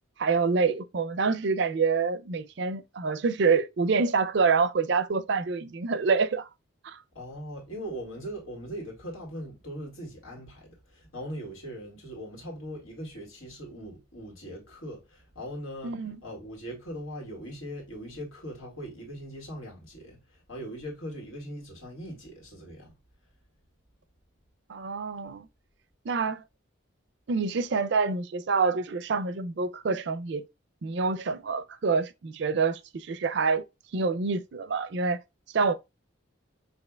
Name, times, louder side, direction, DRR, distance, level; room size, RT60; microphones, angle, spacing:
voice 1, 0.2-6.5 6.8-7.0 15.8-16.2 24.7-25.5 26.1-26.4 27.3-30.4 30.8-33.6 33.9-35.2 35.5-35.7, right 4 dB, 55° right, 0.4 m, -26 dB
voice 2, 7.1-23.0, equal, 80° left, 2.1 m, -40 dB
6.5 x 2.7 x 2.3 m
head